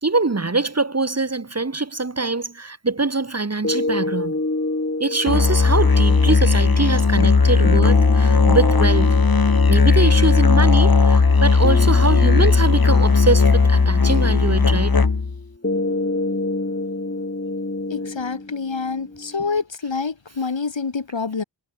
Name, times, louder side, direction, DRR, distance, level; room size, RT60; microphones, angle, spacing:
voice 1, 0.0-4.3 5.0-9.2 9.7-15.0, right 3 dB, 35° right, 1.9 m, -23 dB
sound 1, 3.6-19.6, left 2 dB, 30° left, 6.7 m, -29 dB
Musical instrument, 5.3-15.4, left 4 dB, 50° left, 3.0 m, -16 dB
voice 2, 17.9-21.4, left 4 dB, 75° left, 7.6 m, -27 dB
wide cardioid pair, 60°, 45 cm